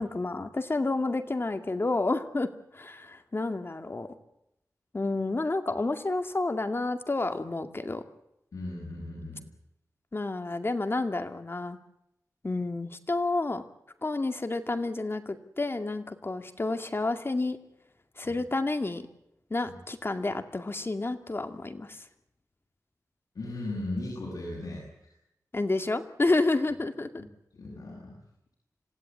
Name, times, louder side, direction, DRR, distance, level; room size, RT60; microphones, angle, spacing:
voice 1, 0.0-4.1 4.9-8.0 10.1-11.8 12.4-13.6 14.0-17.6 18.2-19.0 19.5-22.1 25.5-27.1, left 2 dB, 40° left, 7 dB, 2.3 m, -30 dB
voice 2, 8.5-9.5 18.2-18.3 19.6-19.7 23.3-24.9 27.2-27.3 27.5-28.2, left 2 dB, 80° left, -3 dB, 7.8 m, -37 dB
27.0 x 17.0 x 9.6 m, 0.82 s
wide cardioid pair, 65°, 6 cm